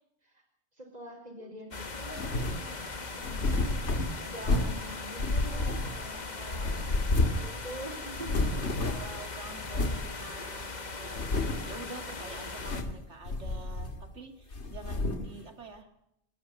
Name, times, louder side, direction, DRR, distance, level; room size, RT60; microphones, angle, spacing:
voice 1, 0.7-3.7 4.2-8.7, right 1 dB, 35° right, -1 dB, 4.4 m, -45 dB
sound 1, 1.7-12.8, left 3 dB, 40° left, 1.4 m, -40 dB
sound 2, 2.1-2.7 3.2-4.8 5.2-6.2 6.5-7.5 7.8-7.9 8.1-9.2 9.7-10.1 10.5-10.6 11.1-11.7 12.5-13.0 13.3-14.1 14.5-15.3, left 2 dB, 75° left, 2.2 m, -30 dB
voice 2, 8.8-11.2 11.6-15.9, right 3 dB, 85° right, 6 dB, 2.5 m, -47 dB
27.5 x 11.5 x 9.7 m, 0.78 s
omnidirectional pair, 1.2 m